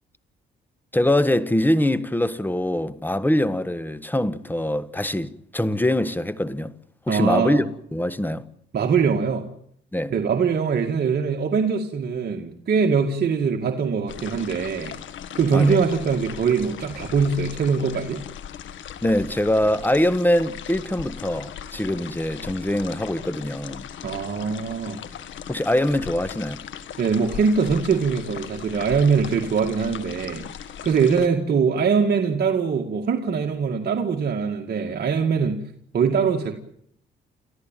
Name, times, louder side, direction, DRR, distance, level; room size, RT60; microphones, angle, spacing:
voice 1, 0.9-6.7 7.1-7.7 7.9-8.4 9.9-10.1 15.5-15.8 19.0-23.9 25.5-26.6, left 1 dB, 10° left, 1.4 m, -23 dB
voice 2, 7.1-7.6 8.7-9.5 10.1-15.0 15.4-18.2 24.0-25.0 27.0-30.5 30.8-35.6 35.9-36.5, right 5 dB, 55° right, 2.2 m, -22 dB
sound 1, 14.1-31.3, left 9 dB, 75° left, 1.8 m, -38 dB
29.5 x 14.0 x 9.1 m
cardioid pair, 90°, 20 cm